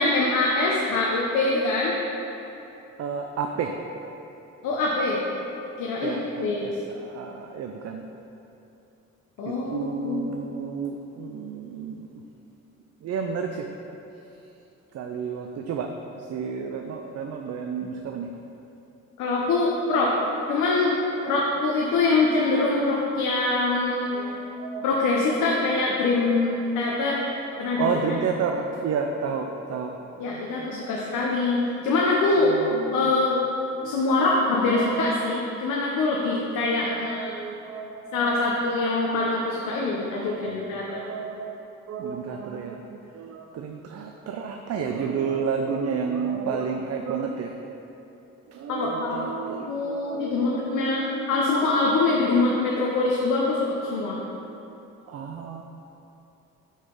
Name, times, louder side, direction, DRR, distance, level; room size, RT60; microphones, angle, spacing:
voice 1, 0.0-2.0 4.6-5.2 5.8-6.1 6.4-6.6 9.4-10.3 19.2-20.1 20.5-20.9 21.2-24.1 24.8-27.3 27.6-27.9 30.2-32.5 32.9-33.4 33.8-37.3 38.1-41.0 48.7-49.2 49.7-54.2, left 3 dB, 85° left, -3 dB, 0.8 m, -24 dB
voice 2, 3.0-3.8 6.0-8.1 9.4-12.2 13.0-13.7 14.9-18.3 20.2-20.5 20.9-21.4 24.0-25.0 25.3-26.1 26.5-26.6 26.8-30.4 30.8-30.9 31.8-31.9 32.3-33.3 33.8-34.4 34.7-35.5 36.6-38.5 39.7-41.6 41.9-47.6 48.5-51.4 51.8-51.9 54.4-54.6 55.1-55.6, right 5 dB, 55° right, 3 dB, 0.5 m, -32 dB
6.2 x 3.9 x 5.3 m, 2.9 s
cardioid pair, 90°, 30 cm